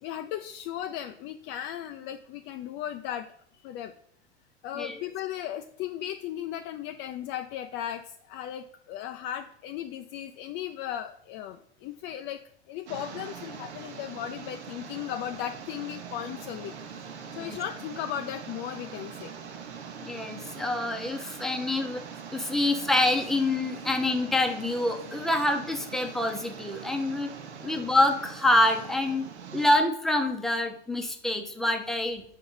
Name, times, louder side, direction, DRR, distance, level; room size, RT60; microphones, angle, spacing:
voice 1, 0.0-3.3 3.5-3.9 4.6-12.4 12.7-16.7 17.3-19.3 27.6-27.8, left 11 dB, 35° left, 6 dB, 0.4 m, -36 dB
sound 1, 12.9-29.8, right 6 dB, 85° right, 1.0 m, -42 dB
voice 2, 20.0-22.0 22.3-27.3 27.6-29.2 29.5-32.2, left 1 dB, ahead, 4 dB, 0.7 m, -26 dB
5.5 x 4.5 x 5.5 m, 0.63 s
hypercardioid pair, 110°, 34 cm